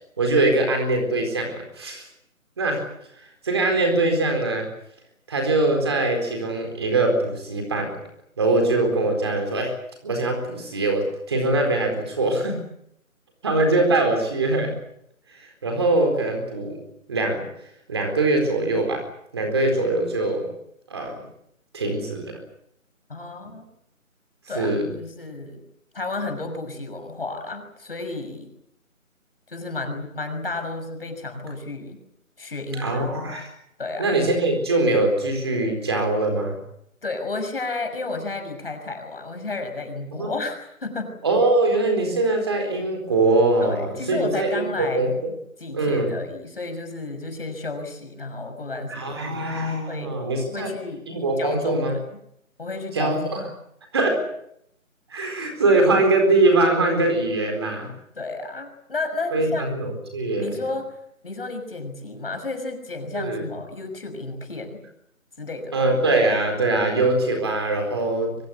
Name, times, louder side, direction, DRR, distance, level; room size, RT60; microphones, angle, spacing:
voice 1, 0.2-2.0 2.6-2.8 3.4-4.7 5.3-7.9 8.4-9.7 10.0-12.6 13.4-14.7 15.3-16.8 17.1-17.5 17.9-19.1 19.3-20.5 20.9-21.2 21.7-22.4 24.5-24.9 32.7-33.5 34.0-36.6 40.1-40.3 41.2-45.3 45.7-46.2 48.9-50.7 51.1-51.9 52.9-53.4 53.9-54.2 55.1-57.9 59.3-60.5 63.1-63.4 65.7-68.4, right 2 dB, 20° right, 4 dB, 4.3 m, -22 dB
voice 2, 23.1-23.7 24.5-25.6 25.9-28.5 29.5-32.0 32.4-33.0 33.8-34.2 37.0-41.2 43.6-45.2 45.6-49.2 49.9-50.2 50.5-51.1 51.4-52.0 52.6-53.2 58.1-59.7 60.4-61.0 61.2-64.8 65.4-65.9, left 3 dB, 40° left, 6 dB, 6.2 m, -32 dB
24.5 x 23.5 x 8.3 m, 0.73 s
figure-of-eight pair, 180°, 41 cm